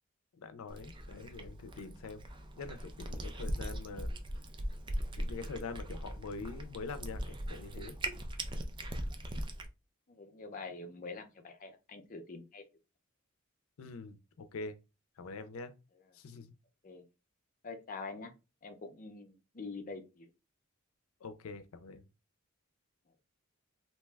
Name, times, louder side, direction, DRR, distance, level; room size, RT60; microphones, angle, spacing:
voice 1, 0.4-2.2 2.6-4.1 5.2-8.0 13.8-14.8 15.2-15.7 16.1-16.5 21.2-22.0, left 4 dB, 90° left, 0.5 m, -44 dB
Cat, 0.7-9.7, right 1 dB, 25° right, 0.3 m, -40 dB
voice 2, 10.1-12.6 16.8-17.0 17.6-18.3 18.6-20.3, left 3 dB, 40° left, 0.5 m, -45 dB
2.8 x 2.2 x 3.3 m
head